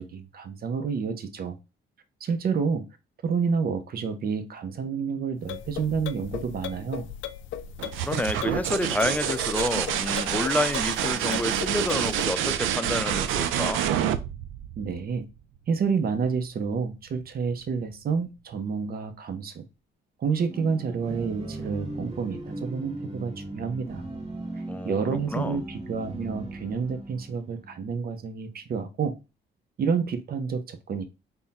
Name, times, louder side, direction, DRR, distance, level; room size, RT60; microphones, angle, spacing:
voice 1, 0.0-1.6 2.2-2.9 3.2-7.1 14.8-15.3 15.7-19.7 20.2-24.1 24.6-29.2 29.8-31.0, right 5 dB, 50° right, 0.7 m, -29 dB
sound 1, 5.4-12.3, left 9 dB, 80° left, 0.4 m, -37 dB
sound 2, 7.8-15.4 17.1-17.7, right 10 dB, 85° right, 0.4 m, -28 dB
voice 2, 8.0-13.8 24.7-25.0 25.3-25.6, left 1 dB, 5° left, 0.4 m, -29 dB
sound 3, 20.5-28.1, right 2 dB, 35° right, 1.8 m, -38 dB
3.5 x 2.2 x 4.1 m
cardioid pair, 90°, 20 cm